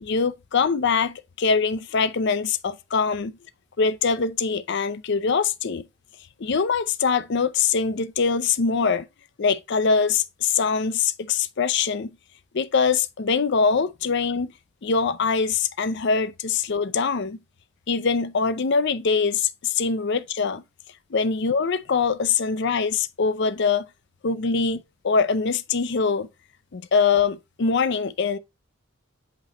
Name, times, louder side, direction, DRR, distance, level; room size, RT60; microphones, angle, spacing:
voice 1, 0.0-3.3 3.8-5.8 6.4-9.0 9.4-12.1 12.5-14.5 14.8-17.4 17.9-20.6 21.1-23.8 24.2-26.3 26.7-28.4, left 5 dB, 60° left, 0.5 m, -23 dB
8.2 x 3.1 x 4.1 m
head